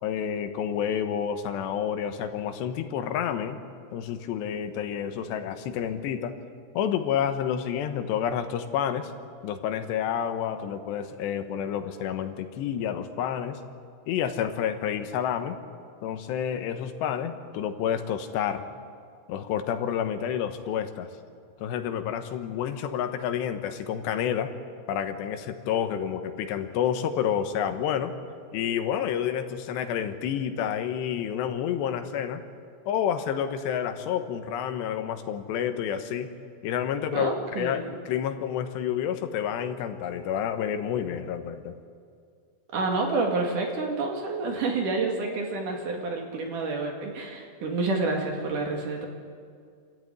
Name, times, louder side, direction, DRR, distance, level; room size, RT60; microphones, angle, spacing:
voice 1, 0.0-3.6 3.9-6.4 6.7-9.1 9.4-13.6 14.1-15.6 16.0-18.7 19.3-21.1 21.6-24.5 24.9-28.1 28.5-32.4 32.9-36.3 36.6-41.7, left 9 dB, 85° left, 8 dB, 3.3 m, -29 dB
voice 2, 37.1-37.9 42.7-49.1, right 3 dB, 55° right, 1 dB, 3.3 m, -29 dB
28.0 x 13.5 x 9.3 m, 2.2 s
omnidirectional pair, 4.9 m